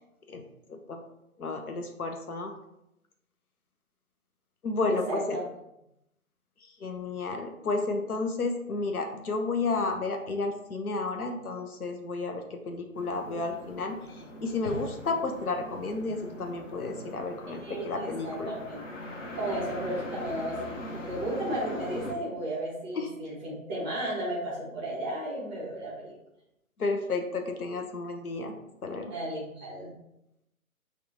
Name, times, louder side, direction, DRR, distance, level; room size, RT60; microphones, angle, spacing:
voice 1, 0.3-1.0 1.4-2.5 4.6-5.4 6.6-18.5 22.9-23.1 26.8-28.5 28.8-29.1, left 3 dB, 85° left, 5 dB, 0.7 m, -32 dB
voice 2, 4.9-5.4 17.5-17.9 18.2-18.8 19.4-26.1 29.1-29.9, right 1 dB, ahead, -6 dB, 0.5 m, -34 dB
sound 1, 13.0-22.1, left 1 dB, 60° left, 0.9 m, -41 dB
5.9 x 2.3 x 2.9 m, 0.85 s
figure-of-eight pair, 130°, 43 cm